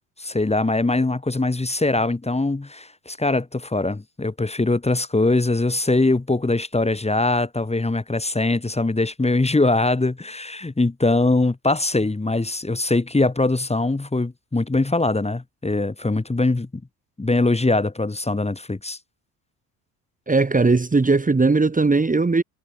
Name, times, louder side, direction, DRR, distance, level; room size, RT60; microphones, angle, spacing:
voice 1, 0.2-16.7 17.2-19.0, left 2 dB, 10° left, 2.6 m, -22 dB
voice 2, 20.3-22.4, right 3 dB, 15° right, 2.2 m, -18 dB
hypercardioid pair, 60°, 50 cm